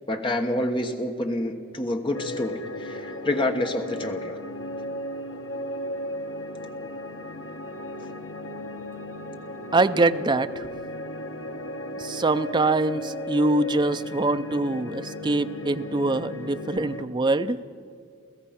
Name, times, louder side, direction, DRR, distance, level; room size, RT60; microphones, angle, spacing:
voice 1, 0.1-4.4, left 1 dB, 25° left, 5 dB, 1.2 m, -28 dB
sound 1, 2.1-17.0, left 1 dB, 65° left, 1.3 m, -35 dB
voice 2, 9.7-10.6 12.0-17.6, right 2 dB, 20° right, 10 dB, 0.5 m, -24 dB
29.5 x 15.5 x 5.8 m, 2.3 s
head